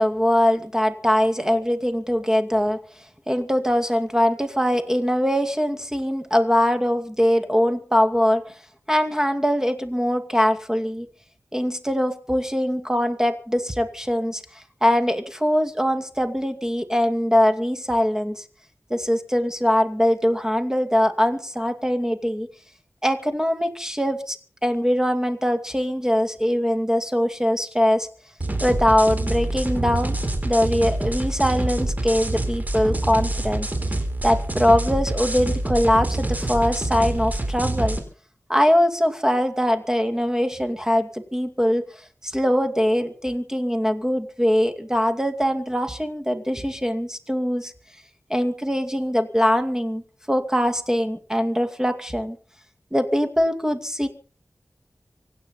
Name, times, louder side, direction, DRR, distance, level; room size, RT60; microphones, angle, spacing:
voice 1, 0.0-2.8 3.3-8.6 8.9-11.1 11.5-18.4 18.9-22.5 23.0-24.4 24.6-28.1 28.6-30.2 30.4-33.7 34.2-38.0 38.5-41.8 42.2-47.7 48.3-52.4 52.9-54.1, equal, 10° right, 7 dB, 2.4 m, -22 dB
sound 1, 28.4-38.0, right 1 dB, 30° right, 4.1 m, -26 dB
25.0 x 9.1 x 5.7 m, 0.41 s
wide cardioid pair, 55°, 5 cm